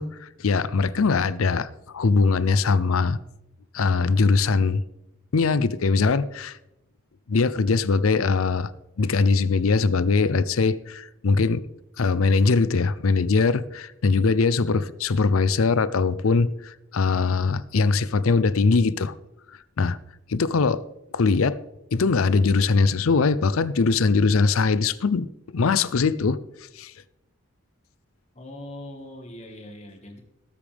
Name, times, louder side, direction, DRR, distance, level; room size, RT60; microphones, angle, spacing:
voice 1, 0.0-1.7 1.9-3.2 3.7-4.8 5.3-6.6 7.3-8.7 9.0-11.6 12.0-19.1 19.8-20.0 20.3-20.8 21.1-21.6 21.9-26.4 26.8-26.9, left 4 dB, 85° left, 16 dB, 0.6 m, -21 dB
voice 2, 28.3-30.2, left 1 dB, 30° left, 3 dB, 1.7 m, -41 dB
18.5 x 8.5 x 3.5 m, 0.91 s
head